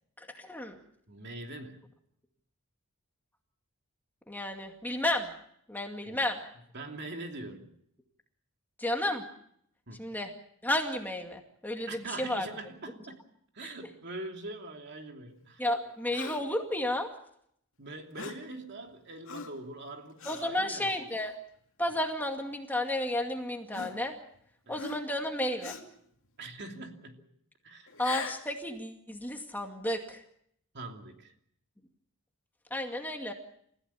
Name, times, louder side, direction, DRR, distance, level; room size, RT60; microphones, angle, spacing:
voice 1, 0.4-0.8 4.3-5.3 5.7-6.4 8.8-9.2 10.0-10.3 10.6-12.5 15.6-17.1 20.3-21.3 21.8-24.1 24.7-25.8 28.0-30.2 32.7-33.3, left 1 dB, 10° left, 3 dB, 2.2 m, -32 dB
voice 2, 1.1-1.8 6.0-6.3 6.7-7.7 9.9-10.0 11.9-13.2 13.5-15.6 17.8-21.0 21.9-22.0 24.6-24.9 26.4-27.2 27.6-27.9 30.7-31.3, right 2 dB, 50° right, 3 dB, 2.9 m, -43 dB
Gasp, 16.1-16.6 18.1-18.5 19.3-19.6 20.2-20.5 21.2-21.3 22.4-22.5 23.7-24.4 24.7-25.2 25.6-26.0 27.9-28.5, left 4 dB, 65° left, 2.7 m, -41 dB
29.5 x 16.0 x 7.1 m, 0.70 s
head